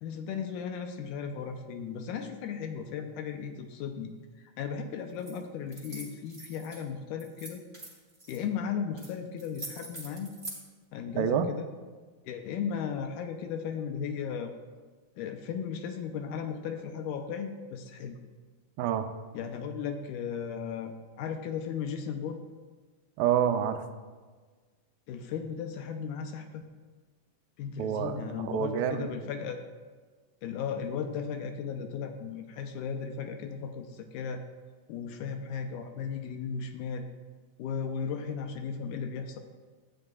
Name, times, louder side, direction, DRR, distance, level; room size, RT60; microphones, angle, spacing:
voice 1, 0.0-4.1 4.4-7.6 8.3-10.4 10.9-11.7 12.3-14.5 15.2-18.2 19.3-22.4 25.1-26.6 27.6-29.6 30.4-34.4 34.9-37.1 37.6-39.4, left 7 dB, 80° left, 5 dB, 1.9 m, -36 dB
sound 1, 5.2-5.4 5.7-6.8 7.2-8.4 9.0-9.1 9.4-10.6, right 2 dB, 15° right, 1.2 m, -43 dB
voice 2, 11.1-11.5 18.8-19.1 23.2-23.8 27.8-29.1, right 9 dB, 85° right, 8 dB, 2.3 m, -28 dB
12.5 x 8.8 x 2.3 m, 1.4 s
omnidirectional pair, 3.8 m